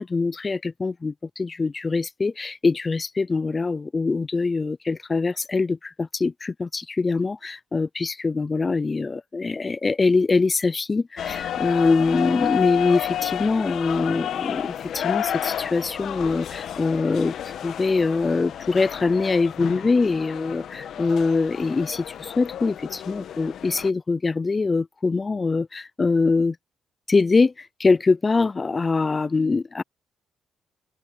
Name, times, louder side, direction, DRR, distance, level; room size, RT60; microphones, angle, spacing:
voice 1, 0.0-26.6 27.1-29.8, left 4 dB, 30° left, 0.3 m, -23 dB
sound 1, 11.2-23.9, left 10 dB, 70° left, 1.0 m, -31 dB
cardioid pair, 90°, 0 cm